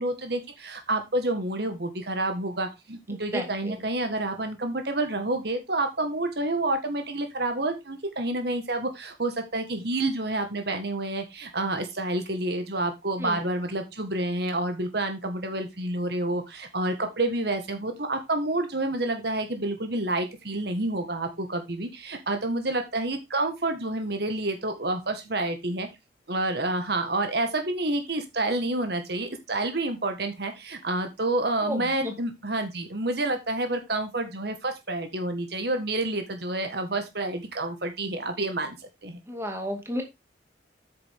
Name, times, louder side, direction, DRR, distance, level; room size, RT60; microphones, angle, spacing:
voice 1, 0.0-25.9 26.3-38.8 39.0-39.2, right 2 dB, 60° right, 6 dB, 1.6 m, -29 dB
voice 2, 3.1-3.8 13.2-13.4 31.6-32.2 39.3-40.0, equal, 15° right, 3 dB, 2.3 m, -33 dB
9.0 x 6.9 x 3.6 m, 0.22 s
head